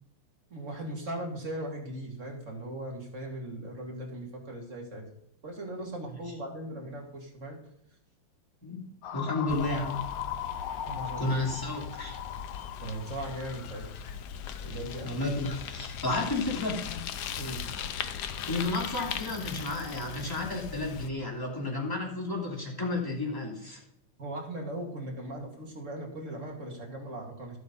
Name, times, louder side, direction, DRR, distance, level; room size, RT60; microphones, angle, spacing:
voice 1, 0.5-5.0 5.4-7.6 10.9-11.4 12.8-13.8 14.6-15.1 17.4-17.6 24.2-27.6, right 1 dB, 35° right, -1 dB, 2.7 m, -38 dB
sound 1, 9.0-14.1, left 10 dB, 85° left, 1.6 m, -39 dB
voice 2, 9.1-10.0 11.2-12.2 15.0-16.8 18.5-23.8, left 2 dB, 10° left, -2 dB, 2.8 m, -32 dB
Bicycle, 9.5-21.1, left 8 dB, 65° left, 1.1 m, -39 dB
12.5 x 8.0 x 5.4 m, 0.76 s
omnidirectional pair, 2.3 m